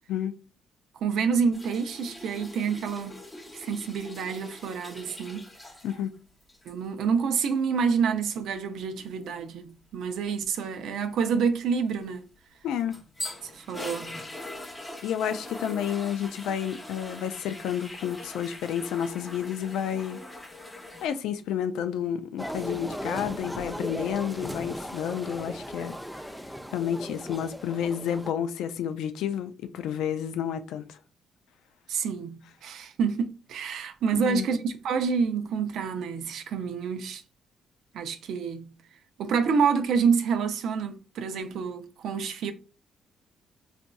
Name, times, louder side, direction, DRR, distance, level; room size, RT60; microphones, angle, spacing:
voice 1, 1.0-3.2 3.6-5.5 6.7-12.3 13.4-14.2 31.9-37.2 37.9-38.7 39.2-42.5, right 6 dB, 75° right, 0.4 m, -28 dB
sound 1, 1.5-6.1 6.4-6.7 12.5-21.1, left 1 dB, 15° left, 0.8 m, -42 dB
voice 2, 12.6-13.0 15.0-20.2 21.0-26.0 26.7-31.0 34.1-34.5, left 9 dB, 85° left, 0.4 m, -30 dB
sound 2, 22.4-28.3, equal, ahead, 0.3 m, -37 dB
4.0 x 2.5 x 2.2 m
cardioid pair, 90°, 0 cm